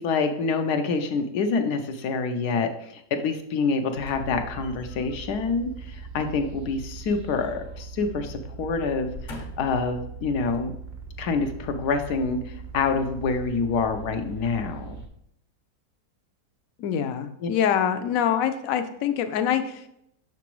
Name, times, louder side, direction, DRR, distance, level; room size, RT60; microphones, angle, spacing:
voice 1, 0.0-10.7 11.2-15.0 17.4-17.5, left 4 dB, 85° left, 6 dB, 1.2 m, -27 dB
sound 1, 4.0-15.1, right 4 dB, 50° right, 0.9 m, -41 dB
sound 2, 4.1-5.1 6.7-7.8 8.1-8.3 8.9-9.9 10.5-10.6, left 2 dB, 45° left, 0.7 m, -44 dB
voice 2, 16.8-19.9, left 9 dB, 70° left, 9 dB, 0.9 m, -25 dB
6.0 x 5.9 x 3.0 m, 0.76 s
omnidirectional pair, 1.7 m